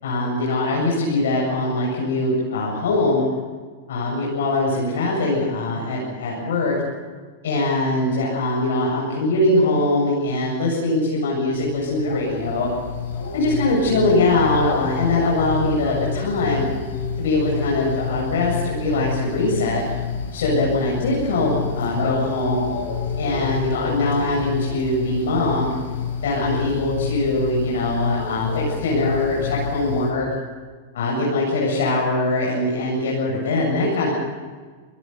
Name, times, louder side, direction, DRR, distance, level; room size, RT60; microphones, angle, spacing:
voice 1, 0.0-3.2 3.9-6.8 7.4-12.7 13.3-16.6 17.2-19.8 20.3-22.6 23.2-25.7 26.2-30.3 30.9-34.1, left 2 dB, 85° left, -3 dB, 7.6 m, -22 dB
sound 1, 11.5-30.1, left 6 dB, 65° left, 6.6 m, -29 dB
26.0 x 18.5 x 6.9 m, 1.5 s
supercardioid pair, 180°, 0 cm